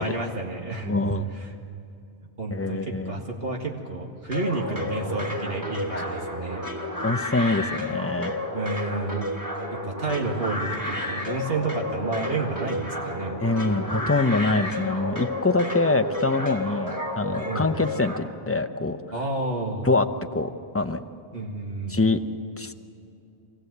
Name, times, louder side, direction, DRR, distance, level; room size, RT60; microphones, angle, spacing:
voice 1, 0.0-1.0 1.3-1.5 2.4-6.6 8.5-9.3 9.7-13.4 17.5-17.7 19.1-19.9 21.3-22.0, right 3 dB, 60° right, 0 dB, 2.2 m, -30 dB
voice 2, 0.8-1.3 2.5-3.2 5.9-6.1 7.0-8.4 13.4-19.0 19.9-20.1 20.3-21.0 21.9-22.2 22.6-22.7, left 3 dB, 15° left, 8 dB, 0.5 m, -24 dB
sound 1, 4.3-18.2, left 1 dB, 15° right, 2.9 m, -31 dB
24.0 x 16.0 x 8.1 m, 2.7 s
omnidirectional pair, 1.1 m